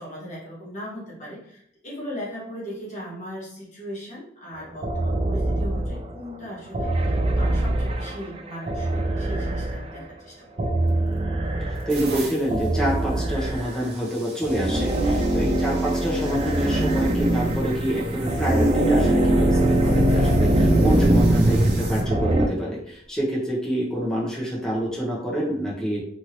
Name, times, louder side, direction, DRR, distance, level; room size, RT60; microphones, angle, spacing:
voice 1, 0.0-10.7, equal, 40° left, -7 dB, 1.2 m, -38 dB
sound 1, 4.8-6.2 6.7-10.0 10.6-12.0 12.5-13.9 14.4-22.5, right 1 dB, 30° right, 0.3 m, -22 dB
sound 2, 10.9-11.2 11.7-22.1 22.9-23.2 24.7-24.9, right 3 dB, 65° right, 0.7 m, -42 dB
voice 2, 11.7-26.0, equal, 5° left, -5 dB, 0.8 m, -27 dB
3.0 x 2.6 x 2.9 m, 0.70 s
head